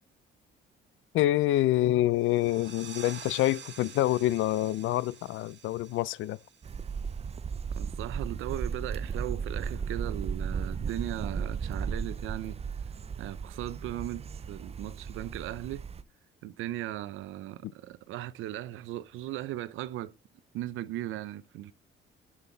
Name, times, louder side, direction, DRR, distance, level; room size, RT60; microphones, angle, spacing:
voice 1, 1.1-6.4, left 15 dB, 80° left, 0.4 m, -26 dB
sound 1, 2.1-7.5, right 7 dB, 60° right, 1.9 m, -48 dB
sound 2, 6.6-16.0, right 6 dB, 30° right, 0.5 m, -35 dB
voice 2, 7.8-12.6 13.2-15.8 16.4-20.2 20.5-21.7, right 14 dB, 90° right, 0.6 m, -37 dB
9.8 x 7.4 x 3.9 m
cardioid pair, 90°, 20 cm